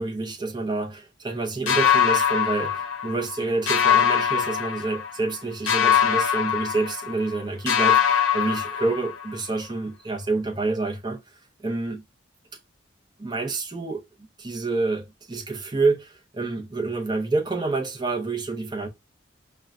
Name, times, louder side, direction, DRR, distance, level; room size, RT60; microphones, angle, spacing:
voice 1, 0.0-12.0 13.2-14.0 14.4-18.9, right 3 dB, 20° right, 0.6 m, -28 dB
sound 1, 1.7-3.4 3.7-5.3 5.7-7.4 7.7-9.4, left 8 dB, 85° left, 0.6 m, -22 dB
5.2 x 2.2 x 2.3 m
head